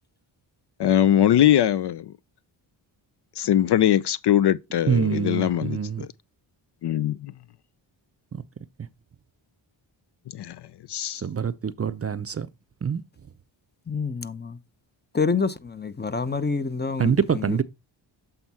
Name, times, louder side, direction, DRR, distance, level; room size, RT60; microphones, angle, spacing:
voice 1, 0.8-2.1 3.4-6.1 6.8-7.3 10.3-10.6 10.9-11.2, left 11 dB, 60° left, 0.5 m, -21 dB
voice 2, 4.9-6.1 11.2-12.5 12.8-13.0 17.0-17.6, right 7 dB, 30° right, 0.5 m, -25 dB
voice 3, 13.9-14.6 15.1-17.6, left 4 dB, 20° left, 0.7 m, -27 dB
7.9 x 3.6 x 4.2 m
cardioid pair, 50°, 48 cm